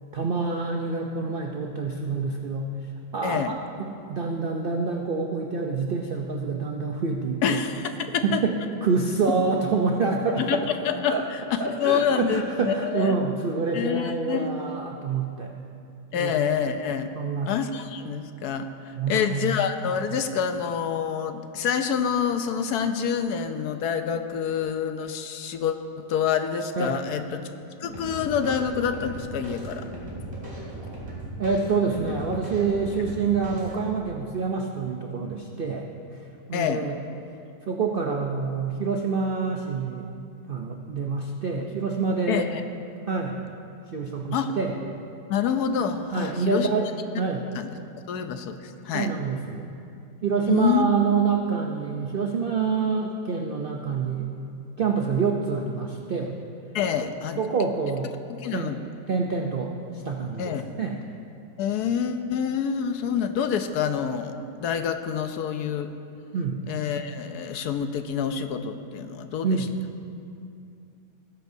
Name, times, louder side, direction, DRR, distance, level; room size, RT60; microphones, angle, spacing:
voice 1, 0.1-2.7 3.1-7.6 8.2-10.6 11.1-11.2 11.6-15.5 16.1-16.3 17.2-17.5 18.9-19.5 26.8-27.0 31.4-35.9 36.5-37.0 37.7-40.1 40.5-42.5 43.1-43.4 43.9-44.8 46.1-46.9 47.2-47.5 48.9-49.7 50.2-54.3 54.8-56.3 57.4-58.1 58.5-58.7 59.1-61.0 66.3-66.6 69.4-69.7, right 5 dB, 60° right, 1 dB, 0.5 m, -27 dB
voice 2, 3.2-3.5 7.4-8.4 10.4-13.1 13.7-14.7 16.1-17.1 17.4-27.4 27.8-29.9 36.5-36.8 42.3-42.6 44.3-44.6 45.3-46.7 47.5-47.7 48.1-49.1 50.5-50.9 56.7-57.4 58.3-58.8 60.4-60.6 61.6-65.9 66.7-69.5, left 7 dB, 70° left, 8 dB, 1.1 m, -27 dB
sound 1, 27.8-33.8, right 1 dB, 20° right, 3.0 m, -37 dB
19.5 x 10.5 x 2.7 m, 2.6 s
omnidirectional pair, 1.8 m